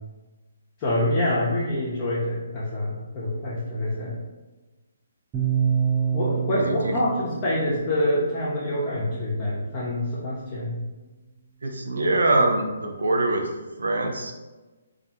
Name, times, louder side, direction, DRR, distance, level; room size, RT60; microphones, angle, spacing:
voice 1, 0.8-4.1 6.1-10.8, left 1 dB, 30° left, -8 dB, 0.6 m, -26 dB
sound 1, 5.3-9.4, right 7 dB, 15° right, 0.4 m, -28 dB
voice 2, 6.6-6.9 11.6-13.4 13.8-14.3, right 2 dB, 80° right, 3 dB, 0.4 m, -23 dB
2.3 x 2.2 x 2.7 m, 1.2 s
hypercardioid pair, 150°, 0 cm